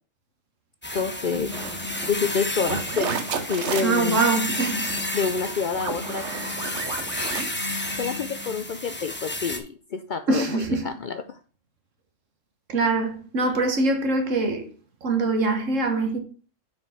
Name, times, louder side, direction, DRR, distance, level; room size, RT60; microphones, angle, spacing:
sound 1, 0.8-9.6, left 1 dB, 10° left, 0.8 m, -32 dB
voice 1, 0.9-1.5 2.1-4.2 5.1-6.2 8.0-11.4, left 5 dB, 55° left, 0.5 m, -28 dB
sound 2, 1.3-8.6, right 3 dB, 65° right, 1.2 m, -33 dB
voice 2, 3.8-4.9 10.3-10.9 12.7-14.7 15.0-16.2, right 3 dB, 80° right, 1.7 m, -23 dB
6.2 x 4.9 x 5.8 m
omnidirectional pair, 1.3 m